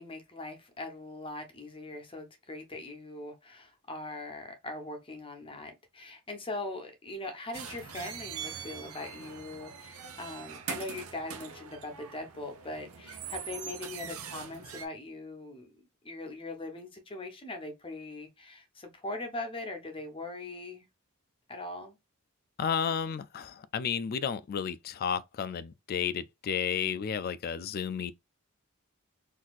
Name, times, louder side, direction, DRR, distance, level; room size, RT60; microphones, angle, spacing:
voice 1, 0.0-15.7 16.0-20.9 21.5-22.0, left 2 dB, 25° left, 0.9 m, -41 dB
sound 1, 7.5-14.9, right 7 dB, 85° right, 0.7 m, -42 dB
voice 2, 22.6-28.1, left 7 dB, 45° left, 0.3 m, -32 dB
4.1 x 2.6 x 2.4 m
head